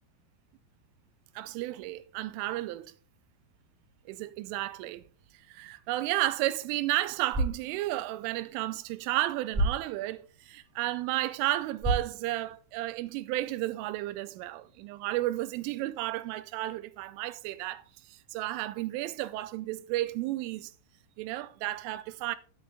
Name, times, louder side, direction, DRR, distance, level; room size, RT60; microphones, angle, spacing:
voice 1, 1.4-2.9 4.1-5.0 5.5-20.7 21.2-22.4, right 16 dB, 85° right, 3.1 m, -33 dB
sound 1, 7.1-13.2, right 2 dB, 10° right, 2.3 m, -36 dB
10.5 x 7.9 x 3.6 m
omnidirectional pair, 5.7 m